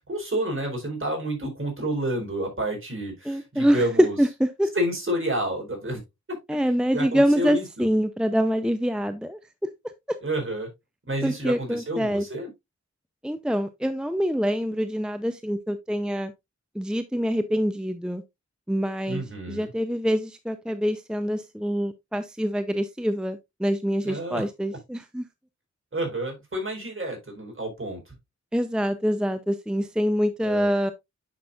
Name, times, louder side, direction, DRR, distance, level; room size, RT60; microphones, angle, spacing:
voice 1, 0.0-4.2 4.7-6.0 6.5-6.6 6.9-7.9 10.2-10.7 11.1-12.5 19.1-19.7 24.0-24.4 25.9-28.1 30.4-30.7, right 1 dB, 45° right, 4.2 m, -29 dB
voice 2, 3.3-4.7 6.5-9.7 11.2-12.3 13.2-16.3 16.7-18.2 18.7-25.3 28.5-30.9, equal, 5° right, 0.7 m, -25 dB
9.5 x 6.1 x 2.5 m
wide cardioid pair, 65°, 29 cm